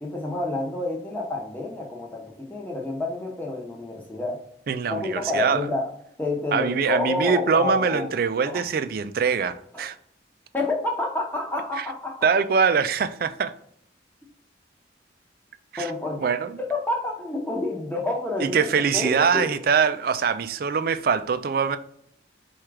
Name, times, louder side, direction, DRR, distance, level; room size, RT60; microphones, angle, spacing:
voice 1, 0.0-4.4 4.8-5.9 6.2-8.1 8.4-8.6 9.7-9.9 10.5-12.2 15.8-16.3 16.6-18.7 18.9-19.5, left 2 dB, 10° left, 0.8 m, -29 dB
voice 2, 4.7-5.7 6.5-10.0 11.8-11.9 12.2-13.5 15.7-15.9 16.2-16.6 18.4-21.8, right 6 dB, 50° right, 0.3 m, -23 dB
4.4 x 2.4 x 4.6 m
head